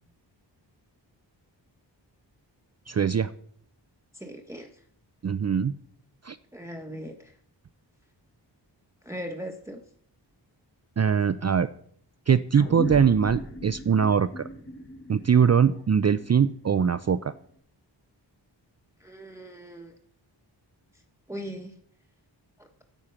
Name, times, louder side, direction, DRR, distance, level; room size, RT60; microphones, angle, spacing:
voice 1, 2.9-3.3 5.2-5.8 6.2-6.4 11.0-11.7 12.3-14.5 15.1-17.3, right 7 dB, 35° right, 12 dB, 0.5 m, -22 dB
voice 2, 4.1-4.8 6.5-7.3 9.0-9.8 19.0-19.9 21.3-21.7 22.6-22.7, equal, 5° right, 3 dB, 1.2 m, -39 dB
sound 1, 12.5-17.4, equal, 25° left, 1.3 m, -38 dB
9.0 x 8.4 x 5.8 m, 0.63 s
cardioid pair, 55°, 44 cm